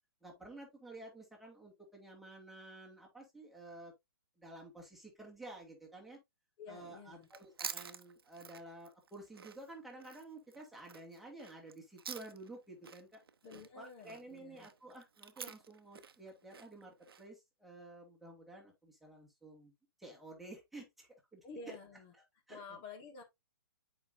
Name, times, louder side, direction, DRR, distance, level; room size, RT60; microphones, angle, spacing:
voice 1, 0.2-3.9 4.4-6.2 6.7-13.2 13.7-19.7 20.0-21.8 22.5-22.6, right 2 dB, ahead, 2.1 m, -52 dB
voice 2, 6.6-7.3 13.4-14.7 21.4-22.1 22.5-23.2, left 4 dB, 35° left, 1.8 m, -50 dB
Chewing mastication, 7.2-12.6 12.8-17.2, right 6 dB, 75° right, 0.8 m, -49 dB
7.9 x 5.2 x 2.7 m
hypercardioid pair, 135°, 12 cm